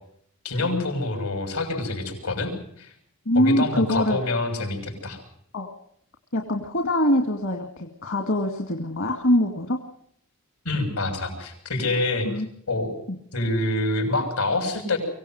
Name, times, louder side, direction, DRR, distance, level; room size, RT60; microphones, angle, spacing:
voice 1, 0.4-2.9 3.3-5.2 10.7-12.3 12.7-12.9 13.3-15.0, left 2 dB, 85° left, 5 dB, 6.8 m, -26 dB
voice 2, 3.3-4.2 5.5-5.7 6.3-9.8 12.2-12.5, left 1 dB, 60° left, 4 dB, 2.1 m, -23 dB
24.5 x 17.0 x 7.8 m, 0.69 s
head